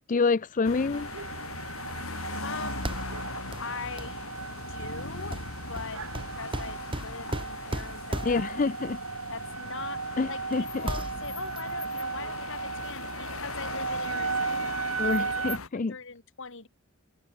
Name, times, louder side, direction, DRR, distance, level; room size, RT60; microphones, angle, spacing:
voice 1, 0.1-1.1 8.2-9.0 10.2-10.8 15.0-15.9, left 4 dB, 40° left, 0.5 m, -27 dB
sound 1, 0.6-15.7, left 3 dB, 80° left, 3.1 m, -39 dB
sound 2, 0.9-15.6, right 5 dB, 75° right, 1.9 m, -36 dB
voice 2, 2.4-2.9 3.6-4.4 4.7-8.6 9.3-10.0 10.3-15.4 15.7-16.7, left 4 dB, 65° left, 2.5 m, -41 dB
sound 3, 2.8-3.2 3.5-3.7 4.0-4.2 5.3-8.6 9.7-9.8 10.2-10.6 10.8-11.6, right 1 dB, 25° right, 1.9 m, -36 dB
head